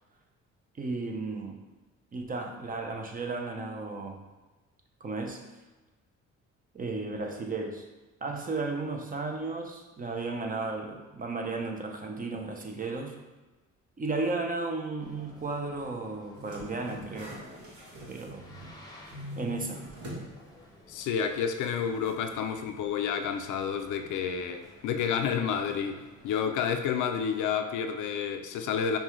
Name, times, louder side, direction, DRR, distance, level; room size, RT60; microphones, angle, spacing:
voice 1, 0.8-1.6 2.1-4.2 5.0-5.4 6.7-7.8 8.2-13.2 14.0-17.4 18.1-18.4 19.3-19.8, right 3 dB, 30° right, 3 dB, 0.6 m, -34 dB
Boat Water vehicle, 15.0-26.4, left 1 dB, 10° left, 0.8 m, -55 dB
sound 1, 16.3-18.8 19.1-20.3 20.7-20.8 22.1-22.2, left 1 dB, 70° right, 1.2 m, -43 dB
voice 2, 20.9-29.0, left 7 dB, 80° left, 6 dB, 0.5 m, -30 dB
5.3 x 2.3 x 3.1 m, 1.2 s
cardioid pair, 90°, 30 cm